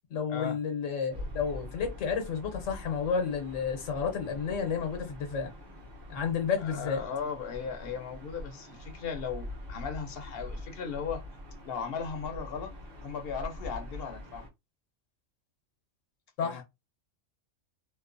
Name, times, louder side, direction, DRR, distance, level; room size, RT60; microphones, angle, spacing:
voice 1, 0.1-5.5 6.1-7.0 16.4-16.6, left 6 dB, 85° left, 1.1 m, -31 dB
Gull seagull / Ocean, 1.1-14.5, left 1 dB, 35° right, 1.2 m, -44 dB
voice 2, 6.6-11.2 11.6-12.7 13.0-14.5 16.4-16.6, left 6 dB, 60° left, 0.7 m, -37 dB
3.0 x 2.1 x 2.5 m
omnidirectional pair, 1.3 m